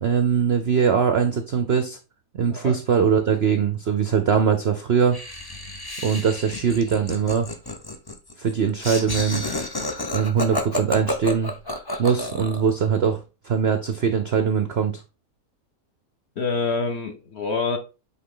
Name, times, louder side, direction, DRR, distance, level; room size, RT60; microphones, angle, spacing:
voice 1, 0.0-2.0 2.3-5.2 6.0-7.5 8.4-9.4 10.1-11.5 12.0-13.2 13.4-15.0, right 7 dB, 70° right, 8 dB, 0.5 m, -21 dB
Laughter, 5.1-12.7, left 1 dB, 35° left, 0.3 m, -30 dB
voice 2, 16.4-17.8, left 4 dB, 50° left, 5 dB, 0.8 m, -26 dB
8.1 x 3.3 x 3.8 m, 0.30 s
omnidirectional pair, 1.9 m